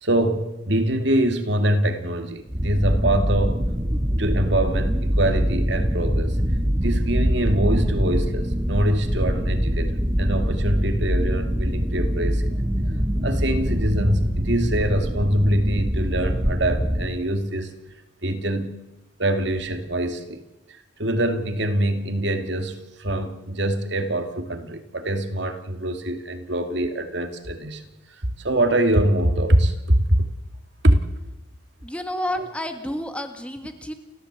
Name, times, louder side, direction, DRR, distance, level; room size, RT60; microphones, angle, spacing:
voice 1, 0.0-3.6 4.2-6.4 6.8-12.5 13.2-17.7 18.2-18.7 19.2-20.4 21.0-27.8 28.1-30.2 30.8-31.0 32.4-32.5, right 1 dB, 60° right, 7 dB, 2.4 m, -24 dB
sound 1, 2.5-17.1, equal, 20° right, 1.5 m, -23 dB
voice 2, 31.8-33.9, left 1 dB, 5° left, 7 dB, 1.6 m, -30 dB
29.5 x 14.5 x 8.3 m, 1.0 s
head